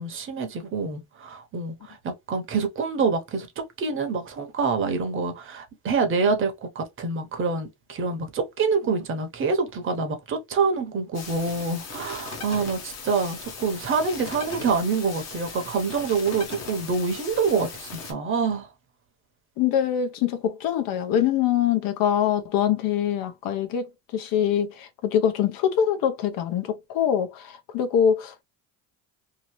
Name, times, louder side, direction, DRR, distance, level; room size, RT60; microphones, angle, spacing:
voice 1, 0.0-18.7, right 4 dB, 35° right, 0.8 m, -26 dB
sound 1, 11.1-18.1, left 4 dB, 45° left, 1.0 m, -38 dB
voice 2, 19.6-28.4, left 9 dB, 70° left, 0.8 m, -24 dB
2.8 x 2.6 x 3.0 m
cardioid pair, 170°, 36 cm